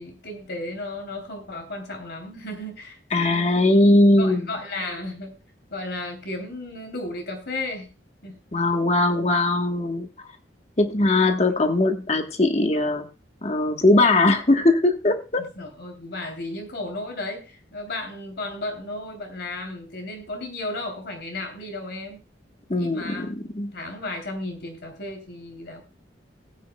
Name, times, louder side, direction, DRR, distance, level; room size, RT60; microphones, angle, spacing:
voice 1, 0.0-3.6 4.2-5.4 5.7-7.9 8.2-8.4 15.4-22.2 22.8-23.3 23.7-25.8, left 2 dB, 65° left, 4 dB, 3.2 m, -34 dB
voice 2, 3.1-4.4 8.5-10.1 10.8-13.1 13.4-15.4 22.7-23.3 23.5-23.7, left 2 dB, 35° left, 6 dB, 1.2 m, -20 dB
18.5 x 9.3 x 2.3 m, 0.30 s
head